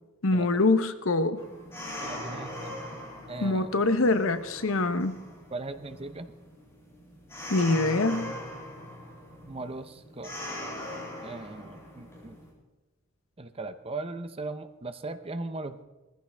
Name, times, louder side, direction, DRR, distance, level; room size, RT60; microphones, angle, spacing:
voice 1, 0.2-1.4 3.4-5.2 7.5-8.4, left 2 dB, 65° left, 11 dB, 0.9 m, -24 dB
sound 1, 1.4-12.5, left 1 dB, 10° left, 6.5 m, -41 dB
voice 2, 2.0-2.8 3.3-3.7 5.5-6.3 9.5-10.4 11.2-12.4 13.4-15.8, right 3 dB, 25° right, 10 dB, 0.8 m, -38 dB
19.5 x 15.0 x 3.5 m, 1.1 s
head